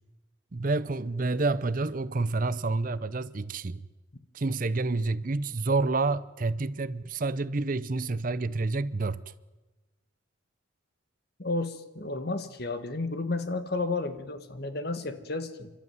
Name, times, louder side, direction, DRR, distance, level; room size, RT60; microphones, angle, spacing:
voice 1, 0.5-3.9 4.3-9.2, right 3 dB, 40° right, 0.6 m, -28 dB
voice 2, 11.4-15.7, left 3 dB, 50° left, 1.6 m, -32 dB
28.5 x 12.5 x 9.4 m
head